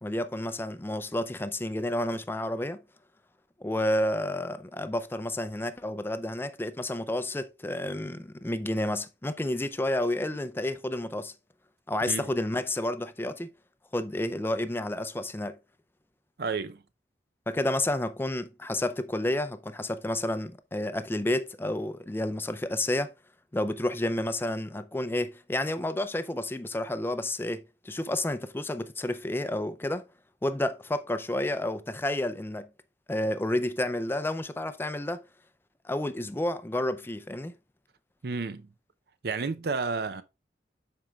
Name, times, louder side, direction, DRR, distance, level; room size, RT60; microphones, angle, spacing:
voice 1, 0.0-2.8 3.6-11.3 11.9-13.5 13.9-15.6 17.5-23.1 23.5-30.1 30.4-32.7 33.1-35.2 35.8-37.5, left 1 dB, 15° left, 0.4 m, -30 dB
voice 2, 16.4-16.8 38.2-38.7 39.2-40.2, right 4 dB, 60° right, 0.6 m, -31 dB
12.5 x 4.5 x 2.3 m
head